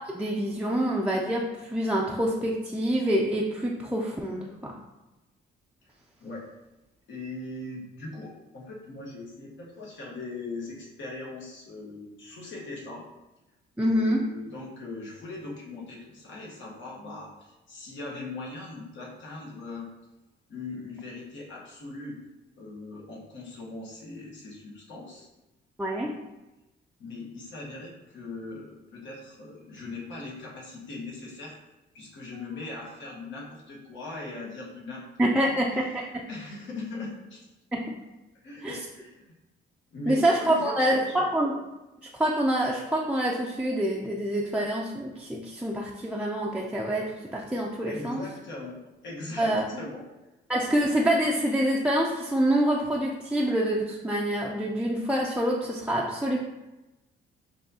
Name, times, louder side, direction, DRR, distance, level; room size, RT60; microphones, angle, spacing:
voice 1, 0.1-4.7 13.8-14.2 25.8-26.1 35.2-36.2 37.7-37.9 38.6-38.8 40.1-41.6 42.1-48.2 49.4-49.6 50.5-56.4, right 1 dB, 5° right, -3 dB, 0.4 m, -26 dB
voice 2, 7.1-13.1 13.9-19.9 20.5-22.2 22.5-25.3 27.0-31.6 31.9-35.6 36.3-37.5 38.4-39.3 39.9-41.3 47.9-50.1, left 2 dB, 70° left, -3 dB, 1.1 m, -40 dB
4.6 x 2.7 x 2.7 m, 1.0 s
cardioid pair, 90°, 20 cm